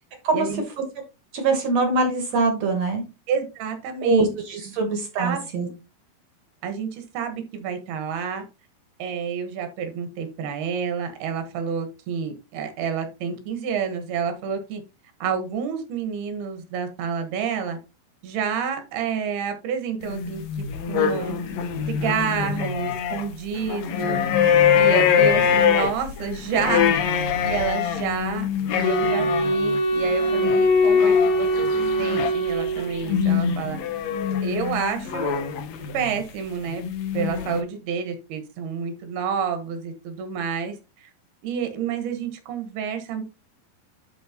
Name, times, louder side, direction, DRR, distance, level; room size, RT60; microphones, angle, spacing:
voice 1, 1.3-3.0 4.0-5.7, right 3 dB, 60° right, 5 dB, 1.9 m, -23 dB
voice 2, 3.3-4.3 5.2-5.4 6.6-8.4 9.0-14.8 15.2-17.8 18.2-20.4 20.9-21.4 21.9-24.2 24.7-26.9 27.4-31.7 32.0-33.8 34.4-35.4 35.9-36.8 37.1-41.1 41.4-43.2, right 6 dB, 75° right, 6 dB, 3.2 m, -29 dB
sound 1, 20.0-23.2 23.5-36.2 36.8-37.6, left 8 dB, 75° left, 1.6 m, -24 dB
Wind instrument woodwind instrument, 28.8-33.3, left 1 dB, 60° left, 1.7 m, -21 dB
12.0 x 4.3 x 2.9 m, 0.29 s
omnidirectional pair, 4.5 m